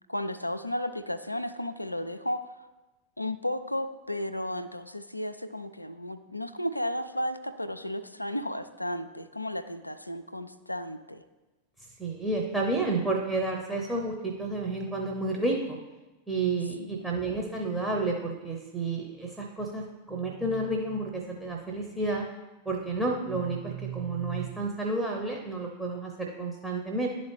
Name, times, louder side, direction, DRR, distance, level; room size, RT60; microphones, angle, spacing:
voice 1, 0.1-2.5 3.2-11.2 16.8-17.1, left 1 dB, 85° left, 10 dB, 0.3 m, -34 dB
voice 2, 12.0-15.8 16.3-22.3 22.6-27.1, right 3 dB, 10° right, -1 dB, 0.8 m, -30 dB
11.0 x 4.1 x 3.3 m, 1.1 s
figure-of-eight pair, 90°, 0 cm